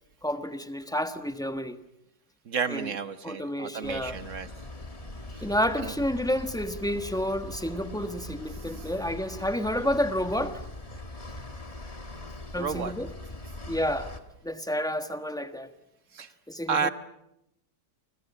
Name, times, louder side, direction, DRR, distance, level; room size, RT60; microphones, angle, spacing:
voice 1, 0.2-1.8 2.7-2.9 3.2-4.2 5.4-10.6 12.5-13.1 13.7-14.1 14.4-15.7 16.5-16.9, equal, ahead, 1.3 m, -30 dB
voice 2, 2.4-4.5 5.3-5.4 5.8-5.9 12.6-12.9 16.1-16.3 16.7-16.9, right 6 dB, 50° right, 1.4 m, -31 dB
sound 1, 3.8-14.2, left 2 dB, 20° left, 1.8 m, -41 dB
29.5 x 25.5 x 7.2 m
omnidirectional pair, 1.8 m